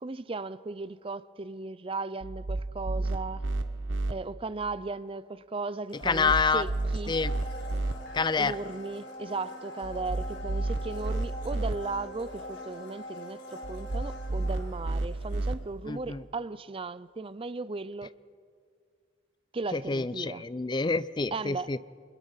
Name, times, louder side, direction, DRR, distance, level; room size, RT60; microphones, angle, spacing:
voice 1, 0.0-3.5 4.1-7.1 8.4-18.1 19.5-20.4 21.3-21.7, right 3 dB, 30° right, 0.5 m, -36 dB
sound 1, 2.2-4.1 6.0-7.9 9.8-11.7 13.6-15.6, right 2 dB, 80° right, 1.0 m, -31 dB
Domestic sounds home sounds, 5.9-15.8 16.1-16.2, left 1 dB, 65° left, 4.2 m, -44 dB
voice 2, 5.9-6.6 7.1-7.3 8.1-8.6 15.8-16.2 19.7-21.8, left 4 dB, 25° left, 0.5 m, -27 dB
25.0 x 21.5 x 5.7 m
head